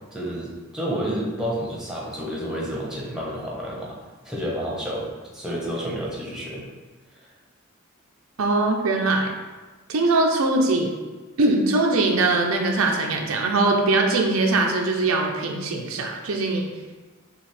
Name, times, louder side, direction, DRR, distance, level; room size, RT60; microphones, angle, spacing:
voice 1, 0.1-4.0 4.2-6.6, equal, 5° right, -4 dB, 0.9 m, -30 dB
voice 2, 8.4-9.3 9.9-10.9 11.4-16.7, right 2 dB, 90° right, 2 dB, 0.6 m, -21 dB
5.9 x 2.4 x 3.4 m, 1.3 s
head